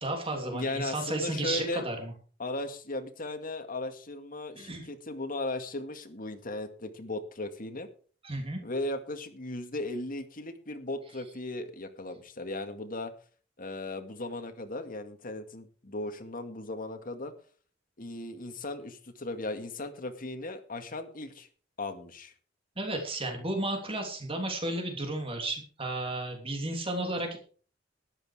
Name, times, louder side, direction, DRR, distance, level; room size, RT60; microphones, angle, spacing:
voice 1, 0.0-2.1 4.6-4.8 8.2-8.6 22.8-27.4, right 2 dB, 30° right, 3 dB, 3.1 m, -33 dB
voice 2, 0.5-1.8 2.4-7.9 8.6-13.1 13.6-17.3 18.0-21.5 21.8-22.3, left 2 dB, 50° left, 6 dB, 2.1 m, -37 dB
13.5 x 11.0 x 4.9 m, 0.41 s
head